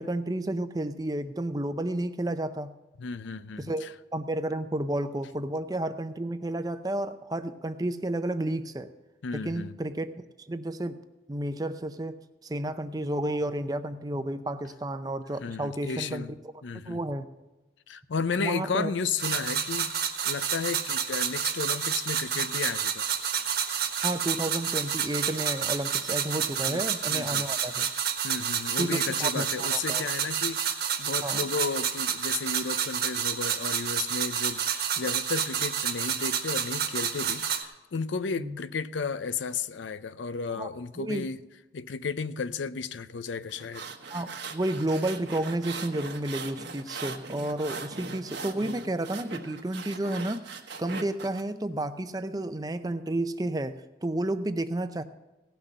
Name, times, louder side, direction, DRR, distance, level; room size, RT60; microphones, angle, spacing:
voice 1, 0.0-2.7 3.6-3.9 4.1-8.9 9.3-10.1 10.5-11.0 11.3-12.2 12.4-16.3 16.9-17.3 18.4-18.9 24.0-27.9 28.8-30.1 31.2-31.4 38.4-38.6 40.6-40.7 41.0-41.2 44.1-55.0, right 1 dB, 20° right, 10 dB, 0.5 m, -31 dB
voice 2, 3.0-3.9 9.2-9.7 15.4-16.4 16.6-17.0 17.9-23.1 26.7-26.8 27.1-27.4 28.2-41.4 41.7-43.9, left 5 dB, 85° left, 14 dB, 0.5 m, -33 dB
sound 1, 19.2-37.6, right 8 dB, 55° right, 1.4 m, -29 dB
sound 2, 43.5-51.4, right 4 dB, 75° right, 1.2 m, -40 dB
17.0 x 6.1 x 6.5 m, 1.1 s
head